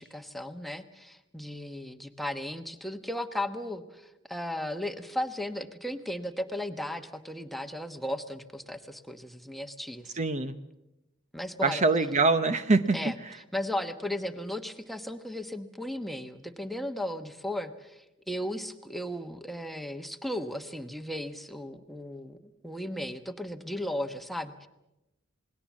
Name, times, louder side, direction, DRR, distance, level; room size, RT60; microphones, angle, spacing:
voice 1, 0.0-10.2 11.3-11.8 12.9-13.2 13.5-22.4 22.6-24.7, left 1 dB, ahead, 8 dB, 1.2 m, -36 dB
voice 2, 10.1-10.6 11.6-13.0, right 3 dB, 35° right, 11 dB, 0.8 m, -24 dB
28.0 x 20.0 x 7.4 m, 0.94 s
head